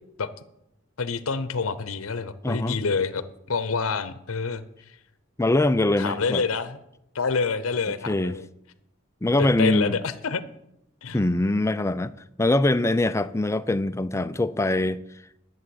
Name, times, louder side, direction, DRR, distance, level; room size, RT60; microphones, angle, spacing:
voice 1, 1.0-5.0 6.0-6.8 7.1-8.5 9.4-10.4 11.0-11.2, left 4 dB, 75° left, 0.7 m, -27 dB
voice 2, 2.4-2.8 5.4-6.4 8.1-8.4 9.2-10.0 11.1-12.1 12.4-15.0, left 2 dB, 15° left, 0.4 m, -23 dB
11.5 x 7.5 x 7.7 m
head